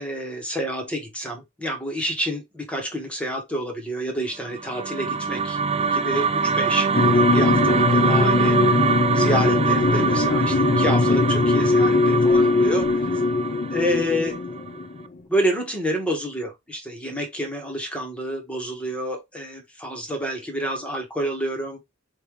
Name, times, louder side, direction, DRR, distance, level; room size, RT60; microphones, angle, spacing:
voice 1, 0.0-8.6 9.1-12.9 13.7-14.4 15.3-21.8, equal, 5° left, 1.6 m, -28 dB
sound 1, 4.5-14.8, right 5 dB, 30° right, 0.4 m, -24 dB
sound 2, 6.9-15.1, left 3 dB, 40° left, 0.6 m, -21 dB
5.5 x 3.0 x 3.2 m
head